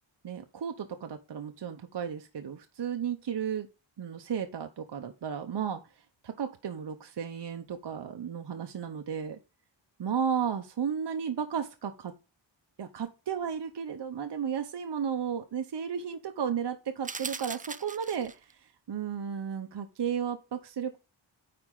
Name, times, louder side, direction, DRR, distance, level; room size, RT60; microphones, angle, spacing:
voice 1, 0.2-3.7 4.0-5.8 6.2-9.4 10.0-12.1 12.8-18.5 18.9-21.0, right 7 dB, 60° right, 6 dB, 0.8 m, -34 dB
sound 1, 17.0-18.5, right 4 dB, 20° right, 0.3 m, -39 dB
9.7 x 4.2 x 3.8 m, 0.30 s
wide cardioid pair, 105°, 48 cm